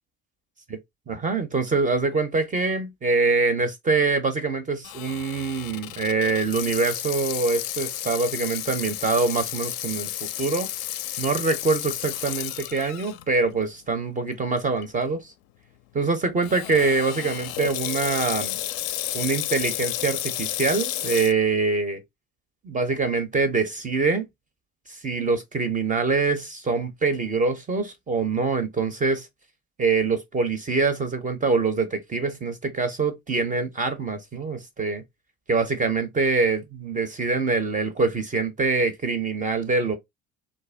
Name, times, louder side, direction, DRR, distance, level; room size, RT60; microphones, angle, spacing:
voice 1, 1.1-10.1 10.4-10.7 11.2-15.3 15.9-18.6 19.1-22.0 22.6-24.3 24.9-29.3 29.8-35.0 35.5-40.0, right 4 dB, 20° right, 0.5 m, -24 dB
Water tap faucet / Sink (filling or washing), 4.8-13.2 13.7-13.8 14.6-14.8 16.4-21.3, left 13 dB, 55° left, 0.5 m, -32 dB
2.5 x 2.1 x 3.2 m
hypercardioid pair, 65°, 42 cm